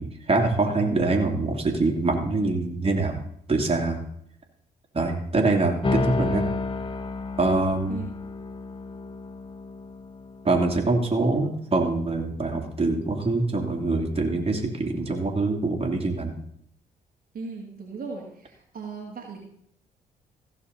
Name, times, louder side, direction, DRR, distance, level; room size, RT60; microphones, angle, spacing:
voice 1, 0.0-3.2 3.5-4.0 4.9-6.4 7.4-8.0 10.4-16.3, right 3 dB, 30° right, 2 dB, 2.7 m, -24 dB
sound 1, 5.8-10.8, left 3 dB, 25° left, 1.0 m, -31 dB
voice 2, 17.3-19.4, right 4 dB, 50° right, -1 dB, 2.1 m, -37 dB
15.5 x 6.6 x 4.1 m, 0.69 s
hypercardioid pair, 45°, 19 cm